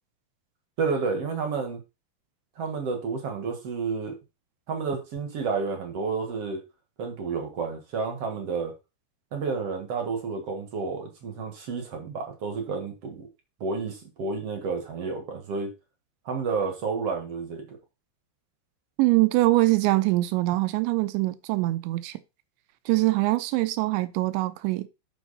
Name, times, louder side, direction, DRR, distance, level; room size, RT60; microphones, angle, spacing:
voice 1, 0.8-1.8 2.6-4.2 4.7-6.6 7.0-8.7 9.3-13.3 13.6-15.7 16.3-17.8, right 4 dB, 55° right, 1.7 m, -30 dB
voice 2, 19.0-22.2 22.9-24.9, right 19 dB, 90° right, 3.0 m, -23 dB
9.3 x 6.5 x 4.2 m
omnidirectional pair, 5.2 m